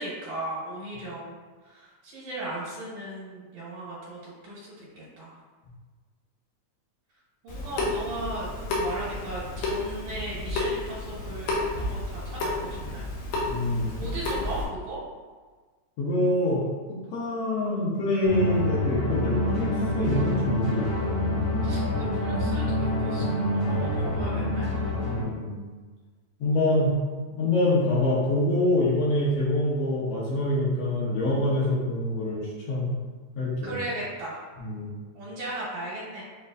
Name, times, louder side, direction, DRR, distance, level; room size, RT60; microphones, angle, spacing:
voice 1, 0.0-1.3 1.6-5.4 7.4-13.0 14.0-15.0 21.6-24.7 26.6-27.0 27.3-27.4 33.6-34.4 35.1-36.2, right 1 dB, 75° right, -7 dB, 2.3 m, -37 dB
Water tap faucet / Sink (filling or washing) / Drip, 7.5-14.6, left 2 dB, 85° left, 2.3 m, -31 dB
voice 2, 13.5-14.0 16.0-16.6 16.9-19.7 19.9-21.2 25.1-25.6 26.4-26.9 27.4-32.4 32.7-32.9 33.4-33.7 34.6-34.9, left 1 dB, 65° left, -7 dB, 1.9 m, -25 dB
sound 1, 18.2-25.2, left 1 dB, 45° left, 1.1 m, -26 dB
6.5 x 3.0 x 2.5 m, 1.4 s
omnidirectional pair, 3.4 m